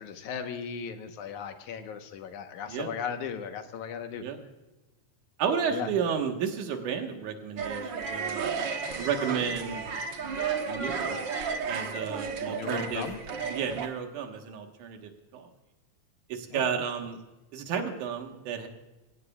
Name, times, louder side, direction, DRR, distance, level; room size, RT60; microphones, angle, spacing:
voice 1, 0.0-4.3 5.7-5.9 12.4-13.2 16.5-16.6, left 7 dB, 80° left, 6 dB, 2.6 m, -37 dB
voice 2, 5.4-8.6 9.0-9.8 10.6-11.3 11.7-13.1 13.5-15.5 16.3-17.2 17.5-18.7, right 7 dB, 90° right, 4 dB, 2.9 m, -32 dB
sound 1, 7.6-13.9, right 5 dB, 55° right, 1.3 m, -33 dB
22.5 x 17.0 x 2.4 m, 1.1 s
omnidirectional pair, 3.4 m